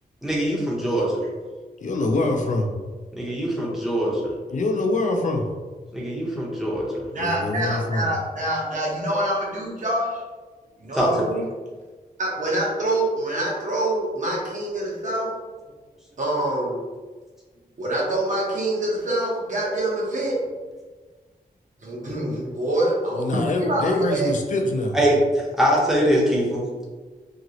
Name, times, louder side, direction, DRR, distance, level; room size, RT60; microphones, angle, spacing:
voice 1, 0.2-1.1 3.2-4.3 5.9-7.1 10.9-11.2 24.9-26.7, equal, 5° right, -5 dB, 0.7 m, -22 dB
voice 2, 1.8-2.7 4.5-5.5 7.2-8.1 23.2-25.0, left 2 dB, 55° left, 3 dB, 0.4 m, -24 dB
voice 3, 7.1-10.0 10.8-11.4 12.2-15.3 16.2-16.7 17.8-20.3 21.8-24.3, right 1 dB, 55° right, -5 dB, 0.9 m, -25 dB
2.9 x 2.8 x 2.7 m, 1.4 s
wide cardioid pair, 160°, 16 cm